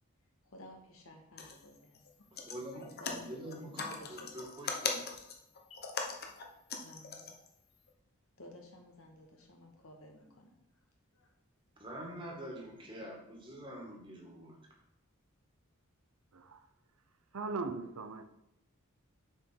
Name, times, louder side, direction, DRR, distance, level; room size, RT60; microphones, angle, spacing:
voice 1, 0.4-2.0 2.7-4.3 5.7-5.8 6.8-7.3 8.4-10.5 11.1-11.3, left 1 dB, 80° left, 1.8 m, -54 dB
sound 1, 1.4-1.6 1.9-2.1 2.4-7.5 7.9-8.0, left 5 dB, 45° left, 1.0 m, -40 dB
voice 2, 2.3-5.1 11.8-14.6, equal, 25° right, 2.0 m, -45 dB
voice 3, 17.3-18.2, right 3 dB, 90° right, 0.7 m, -39 dB
7.4 x 5.2 x 5.8 m
head